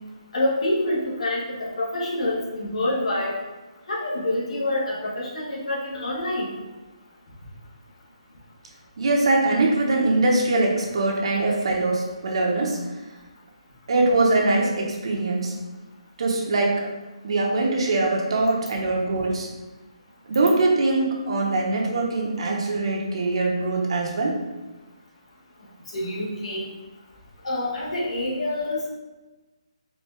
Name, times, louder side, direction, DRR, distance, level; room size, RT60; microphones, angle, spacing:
voice 1, 0.3-3.3 3.9-6.5 25.9-26.7 27.4-28.9, left 1 dB, 70° left, -4 dB, 1.4 m, -26 dB
voice 2, 9.0-12.8 13.9-15.5 16.2-16.9 17.2-19.5 20.3-24.4, right 2 dB, 55° right, -1 dB, 0.7 m, -22 dB
4.4 x 2.7 x 3.2 m, 1.1 s
hypercardioid pair, 160°, 3 cm